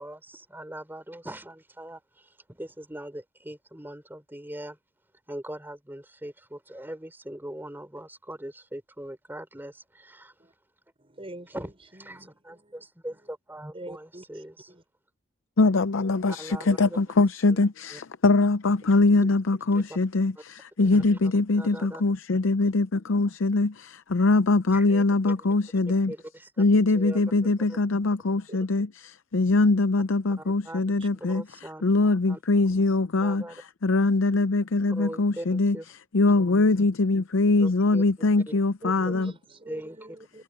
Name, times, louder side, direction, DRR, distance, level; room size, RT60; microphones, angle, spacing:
voice 1, 0.0-4.8 5.3-10.3 11.5-14.7 16.3-17.0 17.5-17.6 17.9-18.0 19.9-20.0 20.4-20.5 20.8-22.0 24.7-25.5 26.1-26.6 26.9-27.2 27.7-27.8 30.4-31.8 32.3-32.4 33.2-33.6 34.9-35.9 37.6-38.5 38.8-39.1 39.7-40.2, right 1 dB, 10° right, 3.5 m, -41 dB
voice 2, 11.0-12.8 13.7-14.8 19.2-19.3 25.3-25.4 28.5-28.6 29.3-29.7 31.0-31.1 34.0-34.1 38.8-40.4, right 1 dB, 30° right, 5.3 m, -46 dB
voice 3, 15.6-26.1 26.6-28.9 29.3-31.4 31.8-33.4 33.8-35.8 36.1-39.3, left 3 dB, 80° left, 0.6 m, -22 dB
head